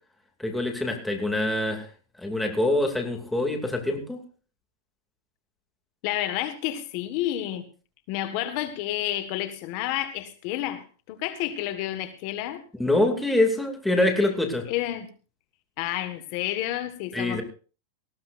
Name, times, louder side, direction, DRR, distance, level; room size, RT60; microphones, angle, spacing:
voice 1, 0.4-1.9 2.2-4.2 12.8-14.7 17.1-17.4, left 1 dB, 5° left, 3 dB, 2.5 m, -25 dB
voice 2, 6.0-7.6 8.1-12.6 14.6-15.1 15.8-17.4, left 13 dB, 50° left, 9 dB, 1.6 m, -30 dB
19.0 x 16.0 x 2.6 m, 0.36 s
supercardioid pair, 140°, 0 cm